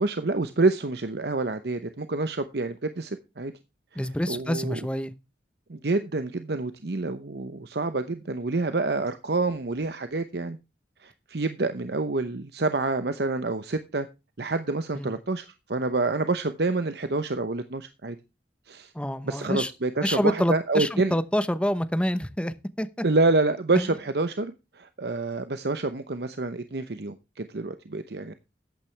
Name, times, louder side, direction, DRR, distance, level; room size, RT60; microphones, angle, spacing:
voice 1, 0.0-3.5 4.3-4.8 5.7-10.6 11.0-14.1 14.4-18.2 18.7-18.9 19.2-21.2 23.0-28.3, right 3 dB, 65° right, 0.8 m, -27 dB
voice 2, 4.0-5.1 14.9-15.1 18.9-19.7 20.0-23.0 23.8-23.9, equal, 5° left, 0.8 m, -27 dB
13.5 x 8.8 x 3.3 m
head